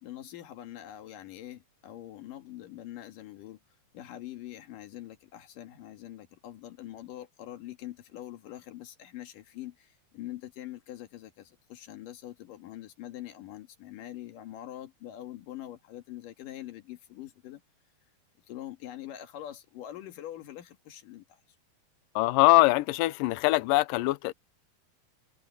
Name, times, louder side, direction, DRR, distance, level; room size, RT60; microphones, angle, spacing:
voice 1, 0.0-3.6 3.9-17.6 18.5-21.4, left 13 dB, 60° left, 3.1 m, -44 dB
voice 2, 22.2-24.3, left 19 dB, 90° left, 1.9 m, -23 dB
omnidirectional pair, 4.7 m